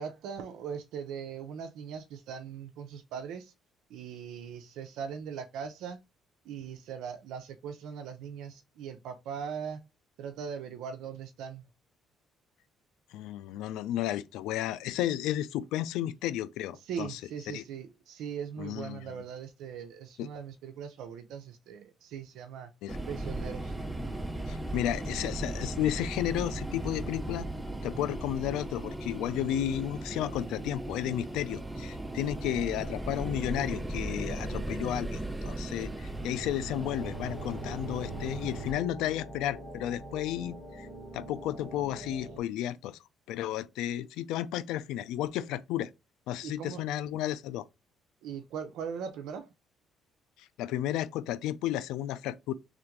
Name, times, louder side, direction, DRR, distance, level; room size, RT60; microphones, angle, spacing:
voice 1, 0.0-3.5 3.9-6.0 6.4-9.9 10.2-11.6 16.8-22.7 23.1-23.8 24.2-24.3 46.4-46.8 48.2-49.5, right 7 dB, 80° right, 0.5 m, -40 dB
voice 2, 13.1-17.2 17.5-17.6 18.6-19.2 20.2-20.3 22.8-23.0 24.5-27.5 27.8-40.9 41.1-43.0 43.3-45.9 46.3-47.7 50.4-52.5, left 12 dB, 90° left, 0.3 m, -33 dB
sound 1, 22.9-38.7, right 1 dB, 10° right, 0.6 m, -37 dB
sound 2, 36.7-42.4, right 1 dB, 25° left, 1.4 m, -43 dB
3.4 x 2.5 x 4.5 m
cardioid pair, 100°, 0 cm